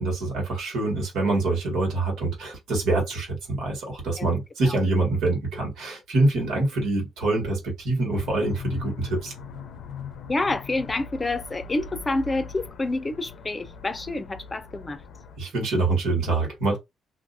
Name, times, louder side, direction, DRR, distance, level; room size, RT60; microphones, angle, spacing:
voice 1, 0.0-9.3 15.4-16.8, right 2 dB, 80° right, 1.7 m, -25 dB
sound 1, 8.1-15.4, left 6 dB, 80° left, 0.6 m, -40 dB
voice 2, 10.3-15.0, left 2 dB, 25° left, 0.6 m, -28 dB
2.7 x 2.5 x 2.6 m
cardioid pair, 90°, 0 cm